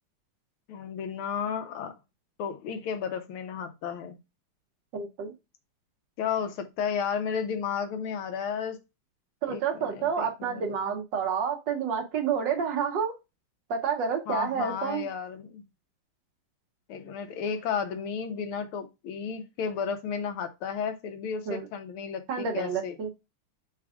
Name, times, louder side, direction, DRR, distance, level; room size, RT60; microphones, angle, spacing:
voice 1, 0.7-2.0 2.4-4.2 6.2-8.8 9.5-10.9 14.3-15.6 16.9-23.0, left 7 dB, 80° left, 1.6 m, -33 dB
voice 2, 4.9-5.3 9.4-13.1 13.7-15.1 21.5-21.7 22.3-23.1, right 6 dB, 65° right, 1.3 m, -29 dB
4.1 x 2.3 x 4.7 m
omnidirectional pair, 2.3 m